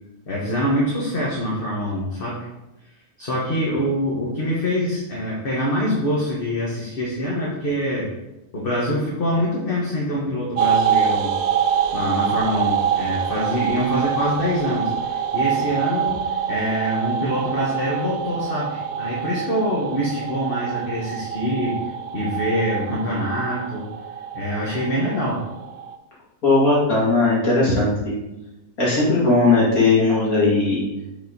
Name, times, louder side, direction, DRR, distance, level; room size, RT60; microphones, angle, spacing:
voice 1, 0.3-2.4 3.2-8.1 8.5-11.4 11.9-21.8 22.1-23.9 24.3-25.4, equal, 40° left, -5 dB, 1.3 m, -25 dB
sound 1, 10.6-25.9, right 8 dB, 65° right, 0.6 m, -25 dB
voice 2, 26.4-28.1 28.8-30.8, left 3 dB, 80° left, -7 dB, 2.8 m, -18 dB
5.4 x 4.1 x 5.1 m, 0.98 s
omnidirectional pair, 1.5 m